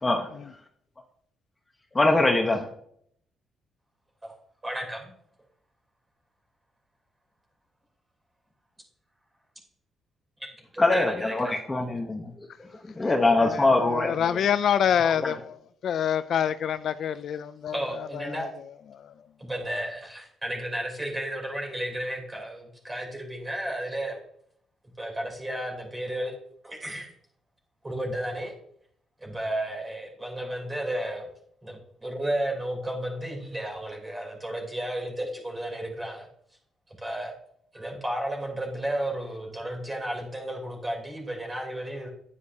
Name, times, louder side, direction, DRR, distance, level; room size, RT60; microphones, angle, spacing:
voice 1, 1.9-2.7 10.8-12.3 12.8-14.1 15.0-15.3, left 2 dB, 20° left, 1.0 m, -23 dB
voice 2, 4.6-5.1 10.7-11.6 17.7-18.5 19.4-24.2 25.0-26.3 26.6-27.1 27.8-28.5 29.2-31.3 31.6-36.3 37.0-37.3 37.7-42.1, right 1 dB, 20° right, 3.4 m, -33 dB
voice 3, 13.4-15.6 15.8-17.8 18.1-18.5 19.0-19.1, left 8 dB, 65° left, 0.3 m, -26 dB
9.4 x 8.7 x 2.8 m
cardioid pair, 90°, 0 cm